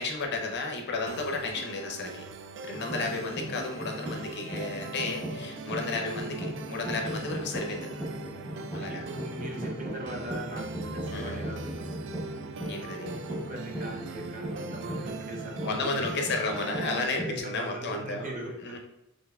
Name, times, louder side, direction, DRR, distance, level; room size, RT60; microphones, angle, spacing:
voice 1, 0.0-2.2 2.6-7.9 8.7-9.0 11.1-11.4 12.6-13.1 15.6-18.3 18.6-18.8, left 3 dB, 55° left, 2 dB, 0.7 m, -33 dB
sound 1, 1.1-17.1, right 4 dB, 60° right, 0.3 m, -42 dB
sound 2, 2.7-17.4, right 1 dB, 10° left, 0.8 m, -38 dB
voice 2, 8.5-12.2 12.8-16.1 17.1-18.8, right 1 dB, 40° right, 0 dB, 0.7 m, -40 dB
4.4 x 3.2 x 2.3 m, 0.91 s
head